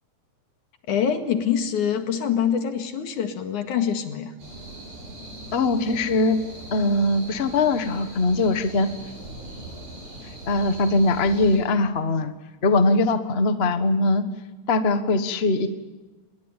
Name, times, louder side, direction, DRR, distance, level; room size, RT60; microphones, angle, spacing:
voice 1, 0.9-4.3, left 8 dB, 85° left, 6 dB, 3.4 m, -25 dB
sound 1, 4.4-11.6, right 1 dB, 75° right, 9.1 m, -40 dB
voice 2, 5.5-6.4 6.7-8.9 10.5-12.3 12.6-14.2 14.7-15.7, left 2 dB, 55° left, 9 dB, 0.6 m, -21 dB
25.5 x 21.0 x 9.0 m, 1.2 s
omnidirectional pair, 3.4 m